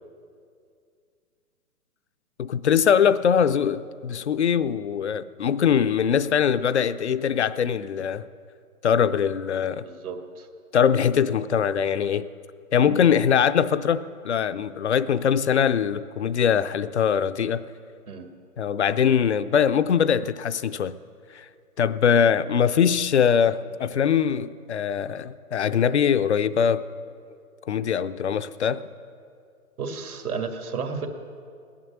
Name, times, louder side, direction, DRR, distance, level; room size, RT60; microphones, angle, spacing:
voice 1, 2.4-8.2 8.8-9.9 10.7-12.2 12.7-17.6 18.6-20.9 21.3-21.5 21.8-26.8 27.7-28.8, left 8 dB, 50° left, 14 dB, 0.5 m, -22 dB
voice 2, 9.8-10.5 12.8-13.1 18.1-18.3 29.8-31.1, right 5 dB, 70° right, 5 dB, 2.1 m, -33 dB
17.0 x 11.0 x 7.1 m, 2.3 s
hypercardioid pair, 175°, 45 cm